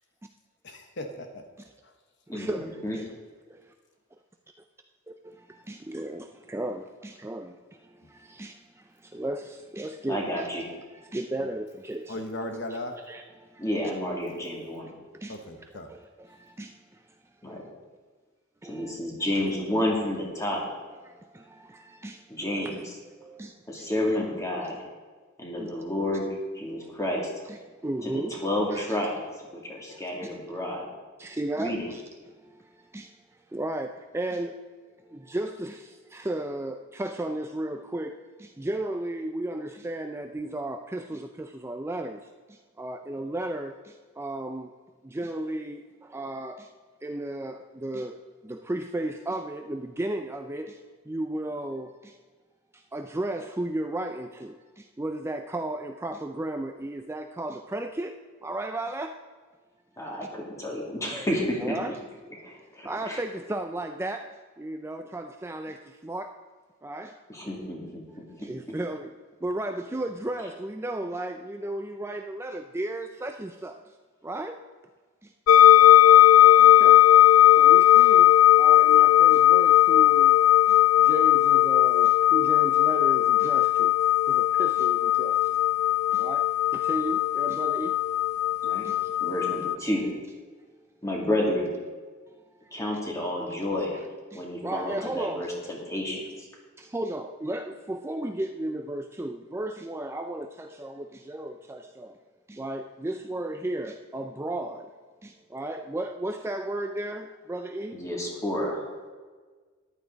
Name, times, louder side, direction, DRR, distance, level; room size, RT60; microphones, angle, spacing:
voice 1, 0.6-1.4 12.1-12.9 15.3-15.9, left 1 dB, 55° left, 5 dB, 1.1 m, -36 dB
voice 2, 2.3-3.1 5.2-7.6 8.1-8.5 9.0-12.2 12.7-12.8 13.1-13.2 13.5-13.6 15.2-15.4 15.9-16.7 18.6-19.0 19.4-19.5 21.0-22.2 23.2-23.5 24.6-24.7 25.6-25.7 27.4-28.4 28.7-29.0 29.9-30.3 31.2-32.0 32.9-33.1 33.5-34.6 35.1-42.2 42.8-44.7 45.0-46.7 47.0-50.8 51.1-52.1 52.9-59.2 61.6-62.0 62.8-64.2 64.6-66.3 66.8-67.2 68.4-69.1 69.4-73.8 74.2-74.6 76.6-77.0 77.6-80.4 80.7-83.9 84.3-85.5 86.1-87.9 88.8-89.1 92.8-93.0 94.3-95.7 96.8-102.2 102.5-104.9 105.2-108.0, right 1 dB, 10° right, 6 dB, 0.4 m, -34 dB
voice 3, 10.1-10.6 13.6-14.9 17.4-17.6 18.6-20.6 22.3-22.8 23.7-24.8 25.4-27.3 28.1-29.2 29.5-30.9 31.6-31.9 60.0-61.7 62.4-63.2 67.3-68.3 88.6-88.8 89.2-90.1 91.0-91.7 92.7-94.0 94.3-96.3 107.9-108.9, left 1 dB, 15° left, -2 dB, 2.6 m, -30 dB
sound 1, 75.5-89.7, left 13 dB, 90° left, 0.4 m, -18 dB
14.0 x 11.5 x 4.0 m, 1.4 s
head